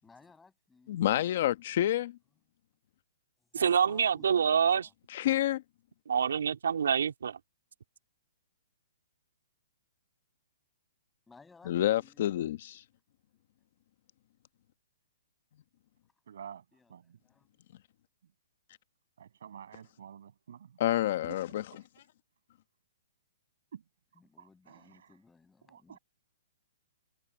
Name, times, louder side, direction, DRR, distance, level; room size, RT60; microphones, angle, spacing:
voice 1, 0.0-1.2 3.4-4.9 11.3-12.4 16.7-17.5 24.1-26.0, left 4 dB, 5° left, 6.4 m, -60 dB
voice 2, 0.9-2.2 5.1-5.6 11.7-12.7 20.8-21.8, left 13 dB, 50° left, 1.1 m, -28 dB
voice 3, 3.6-4.9 6.1-7.4, right 7 dB, 85° right, 2.9 m, -26 dB
voice 4, 16.3-16.6 16.9-17.0 19.2-20.7 21.2-21.4 23.7-23.8 24.7-25.1 25.7-26.0, right 8 dB, 70° right, 7.8 m, -48 dB
hypercardioid pair, 160°, 0 cm